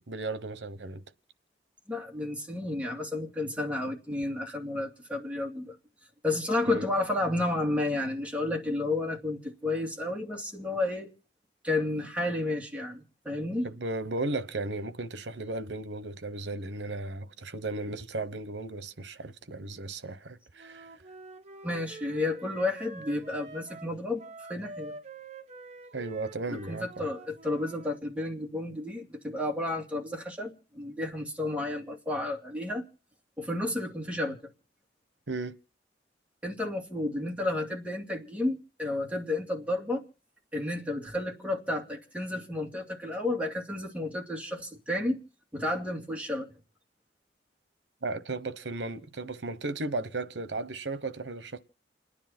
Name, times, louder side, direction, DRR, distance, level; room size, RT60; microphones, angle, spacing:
voice 1, 0.1-1.0 6.7-6.9 13.6-20.9 25.9-27.1 35.3-35.6 48.0-51.6, right 2 dB, 80° right, 1.1 m, -35 dB
voice 2, 1.9-5.8 6.2-11.1 11.6-13.7 21.6-24.9 26.5-32.8 33.4-34.4 36.4-40.1 40.5-45.2 45.5-46.5, left 2 dB, 10° right, 2.6 m, -31 dB
Wind instrument woodwind instrument, 20.6-28.0, right 2 dB, 40° right, 1.2 m, -46 dB
29.0 x 10.0 x 4.4 m
head